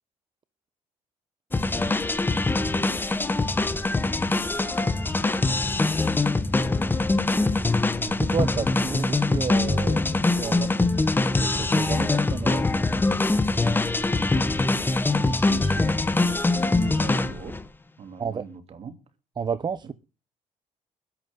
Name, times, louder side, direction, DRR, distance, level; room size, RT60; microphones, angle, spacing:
sound 1, 1.5-17.6, left 2 dB, 15° left, 1.3 m, -23 dB
voice 1, 8.0-10.9 11.4-12.7 18.2-18.4 19.4-19.9, right 6 dB, 35° right, 0.9 m, -31 dB
voice 2, 15.1-15.9 16.8-17.6 18.0-19.0, right 6 dB, 50° right, 3.1 m, -39 dB
21.5 x 11.0 x 3.8 m
cardioid pair, 105°, 13 cm